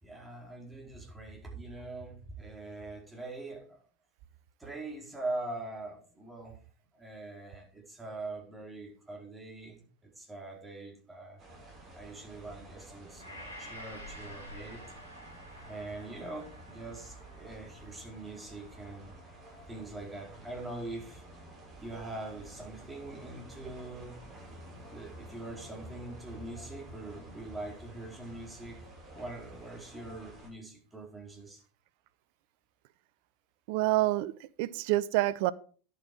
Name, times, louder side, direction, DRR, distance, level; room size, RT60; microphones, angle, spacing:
voice 1, 0.0-3.8 4.6-6.6 6.9-11.4 11.9-14.8 15.7-19.1 19.7-21.2 21.8-24.2 24.9-28.8 29.1-31.6, right 2 dB, 10° right, 4.5 m, -43 dB
sound 1, 11.4-30.5, right 1 dB, 35° right, 6.8 m, -50 dB
Gong, 13.2-21.5 22.0-22.1, equal, 85° right, 4.9 m, -52 dB
voice 2, 33.7-35.5, right 17 dB, 55° right, 0.6 m, -28 dB
11.0 x 8.5 x 4.7 m
figure-of-eight pair, 85°, 0 cm